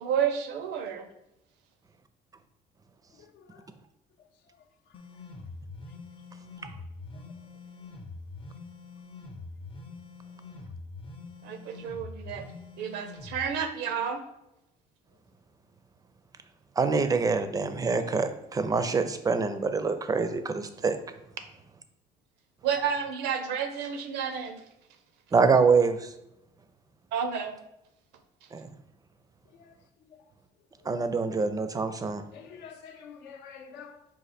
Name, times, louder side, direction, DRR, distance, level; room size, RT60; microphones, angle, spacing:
voice 1, 0.0-1.1 11.4-12.5 12.8-14.2 22.6-24.6 27.1-27.6, right 7 dB, 85° right, 8 dB, 0.6 m, -30 dB
voice 2, 3.2-3.7 4.2-4.3 4.6-4.7 7.1-7.2 29.5-29.8 30.1-30.3 30.8-30.9 32.3-34.1, left 6 dB, 85° left, 5 dB, 0.7 m, -48 dB
sound 1, 4.9-13.5, left 3 dB, 30° left, 0.5 m, -44 dB
voice 3, 16.8-21.0 25.3-26.1 28.5-28.7 30.9-32.2, right 4 dB, 20° right, 10 dB, 0.4 m, -25 dB
5.2 x 2.5 x 4.1 m, 0.85 s
cardioid pair, 110°, 17 cm